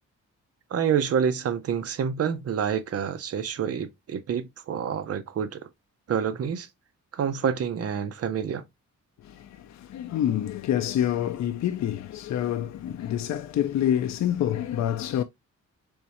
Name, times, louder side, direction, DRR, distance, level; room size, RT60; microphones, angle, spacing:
voice 1, 0.7-5.6 6.1-6.7 7.1-8.6, right 7 dB, 50° right, 0.6 m, -27 dB
voice 2, 9.2-15.2, left 11 dB, 65° left, 0.4 m, -27 dB
3.6 x 3.1 x 2.8 m
wide cardioid pair, 145°, 30 cm